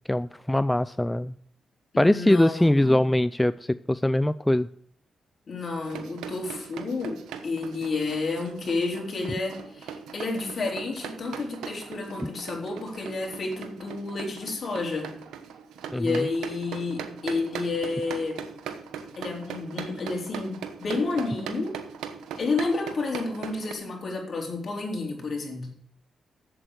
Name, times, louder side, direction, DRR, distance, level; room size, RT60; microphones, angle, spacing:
voice 1, 0.1-1.4 2.0-4.7 15.9-16.3, left 1 dB, 10° left, 15 dB, 0.4 m, -22 dB
voice 2, 1.9-3.0 5.5-15.1 15.9-18.4 19.2-21.8 22.4-25.7, left 3 dB, 55° left, 0 dB, 3.9 m, -30 dB
sound 1, 5.8-23.7, right 7 dB, 90° right, 1.0 m, -40 dB
7.8 x 7.6 x 8.4 m, 0.63 s
supercardioid pair, 55°, 0 cm